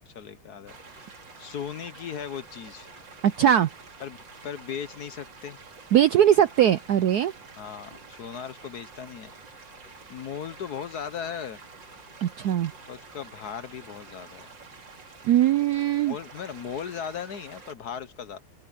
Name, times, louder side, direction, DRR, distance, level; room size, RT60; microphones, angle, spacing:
voice 1, 0.1-2.9 4.0-4.2 4.4-5.6 7.6-9.3 10.1-11.6 12.9-14.5 16.1-18.4, left 8 dB, 55° left, 1.2 m, -37 dB
sound 1, 0.7-17.7, right 4 dB, 55° right, 3.3 m, -48 dB
voice 2, 3.2-3.7 5.9-7.3 12.2-12.7 15.2-16.1, right 10 dB, 85° right, 0.8 m, -20 dB
open air
omnidirectional pair, 2.4 m